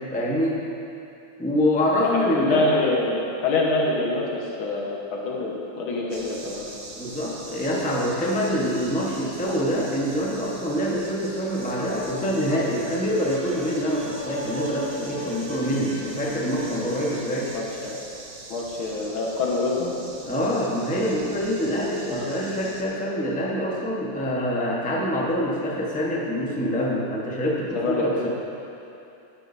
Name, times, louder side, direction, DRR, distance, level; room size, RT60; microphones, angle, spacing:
voice 1, 0.1-0.6 1.4-2.7 6.9-17.5 20.2-28.3, equal, 5° left, -5 dB, 0.8 m, -25 dB
voice 2, 2.0-6.6 17.5-18.0 18.5-19.9 22.1-22.3 27.7-28.3, left 2 dB, 85° left, -2 dB, 2.1 m, -26 dB
sound 1, 6.1-22.8, right 2 dB, 65° right, 0.3 m, -43 dB
sound 2, 11.2-17.5, equal, 90° right, 3.5 m, -37 dB
11.5 x 11.0 x 2.7 m, 2.8 s
omnidirectional pair, 2.2 m